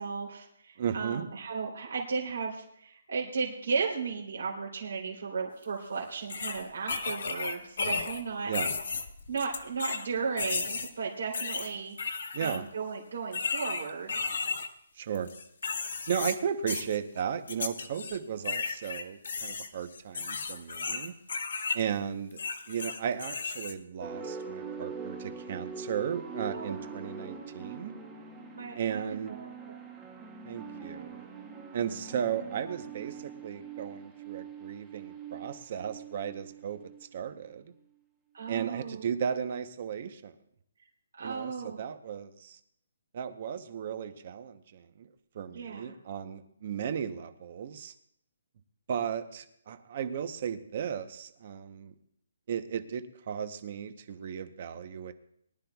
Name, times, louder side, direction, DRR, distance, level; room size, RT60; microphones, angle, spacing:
voice 1, 0.0-8.5 9.3-12.0 12.4-14.3 26.5-26.9 28.5-29.5 38.3-39.1 41.1-41.8 45.5-46.0, right 5 dB, 60° right, -2 dB, 3.2 m, -35 dB
voice 2, 0.8-1.2 8.4-8.7 12.3-12.6 15.0-15.3 16.1-21.1 21.7-22.4 22.7-27.9 28.8-29.4 30.4-31.3 31.7-36.8 37.1-37.7 38.5-40.3 41.2-42.6 43.1-45.1 45.3-47.9 48.9-51.9 52.5-55.1, right 8 dB, 30° right, 10 dB, 0.8 m, -35 dB
sound 1, 5.6-5.7 6.3-8.2 8.5-10.1 10.4-10.9 11.3-12.6 13.3-14.7 15.1-16.4 16.7-17.0 17.5-18.2 18.4-21.8 22.3-23.7, left 4 dB, 60° left, 1.6 m, -34 dB
sound 2, 24.0-37.4, right 5 dB, 5° right, 1.0 m, -43 dB
23.0 x 12.0 x 2.3 m, 0.71 s
hypercardioid pair, 180°, 0 cm